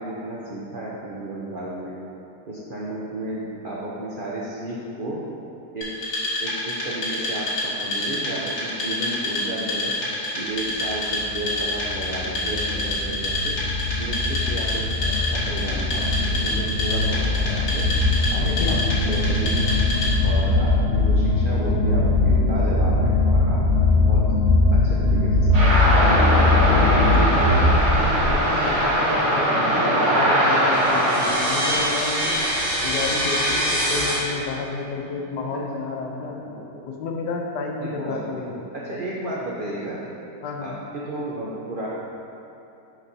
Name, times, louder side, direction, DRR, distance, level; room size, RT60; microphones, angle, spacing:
voice 1, 0.0-1.9 2.5-5.2 5.7-5.9 6.4-9.9 10.3-13.6 14.0-17.8 18.3-18.8 19.1-19.8 20.2-23.6 24.0-24.3 24.7-26.0 36.2-36.8 37.8-38.4 38.7-40.0 40.6-41.9, right 1 dB, 80° right, -6 dB, 0.4 m, -33 dB
Wood, 5.8-20.3, left 1 dB, 65° left, 1.7 m, -28 dB
sound 1, 11.0-28.4, left 2 dB, 45° left, 1.4 m, -21 dB
voice 2, 18.4-18.8 26.7-32.4 32.8-36.4 36.9-38.8 40.4-40.7, left 4 dB, 80° left, 1 dB, 1.2 m, -30 dB
sound 2, 25.5-34.2, right 1 dB, 50° right, 1.2 m, -21 dB
6.1 x 6.0 x 2.7 m, 2.9 s
omnidirectional pair, 1.8 m